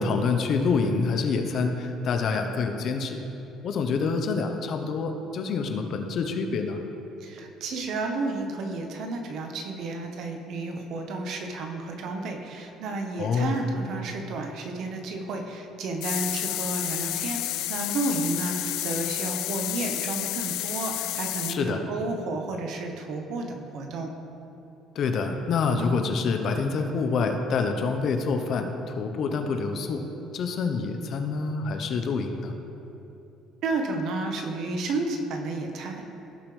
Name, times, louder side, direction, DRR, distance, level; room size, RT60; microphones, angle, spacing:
voice 1, 0.0-3.2 3.6-6.8 13.2-13.6 21.5-21.9 24.9-30.0 30.3-32.5, left 4 dB, 60° left, 5 dB, 1.0 m, -27 dB
voice 2, 7.2-24.1 33.6-36.2, right 3 dB, 65° right, 3 dB, 1.2 m, -32 dB
sound 1, 16.0-21.6, left 15 dB, 75° left, 0.3 m, -30 dB
17.0 x 5.9 x 3.4 m, 2.9 s
supercardioid pair, 75°, 0 cm